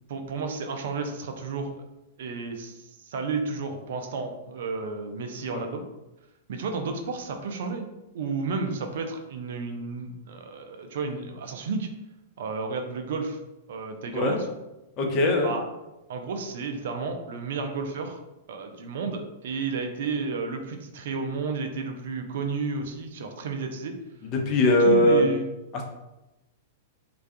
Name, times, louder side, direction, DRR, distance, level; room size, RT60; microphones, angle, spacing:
voice 1, 0.1-1.7 2.2-5.8 6.5-7.9 8.1-11.9 12.4-13.4 13.7-14.5 15.4-15.7 16.1-18.2 18.5-24.0 24.8-25.5, right 4 dB, 65° right, 5 dB, 0.4 m, -32 dB
voice 2, 15.0-15.5 24.5-25.2, left 1 dB, 40° left, 1 dB, 0.6 m, -20 dB
2.3 x 2.2 x 2.6 m, 0.98 s
hypercardioid pair, 105°, 0 cm